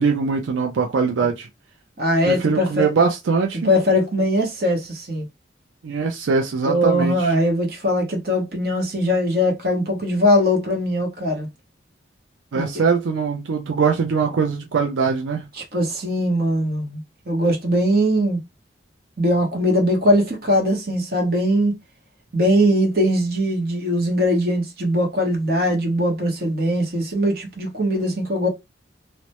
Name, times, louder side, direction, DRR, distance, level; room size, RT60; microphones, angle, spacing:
voice 1, 0.0-1.5 2.2-3.7 5.8-7.3 12.5-15.5, right 5 dB, 85° right, 0.4 m, -22 dB
voice 2, 2.0-2.9 3.6-5.3 6.7-11.5 12.5-12.6 15.6-18.4 19.2-21.8 22.3-28.5, equal, 55° right, 0.8 m, -20 dB
2.1 x 2.1 x 2.8 m
head